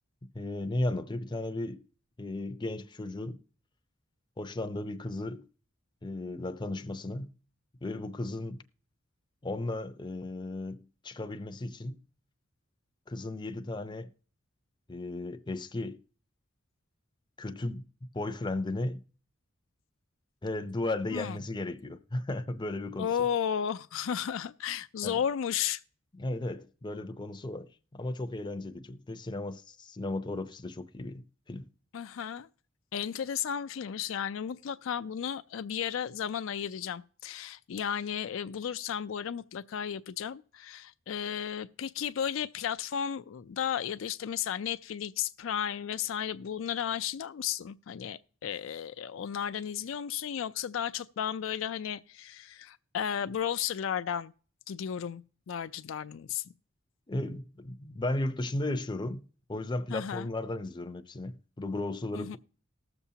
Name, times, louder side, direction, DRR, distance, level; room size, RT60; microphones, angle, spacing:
voice 1, 0.2-1.8 2.2-3.4 4.4-5.5 6.0-7.3 7.8-8.6 9.4-12.0 13.1-14.1 14.9-16.0 17.4-19.0 20.4-23.1 25.0-25.2 26.1-31.7 57.1-62.4, left 2 dB, 20° left, 0.6 m, -35 dB
voice 2, 23.0-25.8 31.9-32.5 32.9-54.3 54.7-56.4 59.9-60.3 62.1-62.4, left 8 dB, 70° left, 0.4 m, -34 dB
19.5 x 7.0 x 2.8 m
head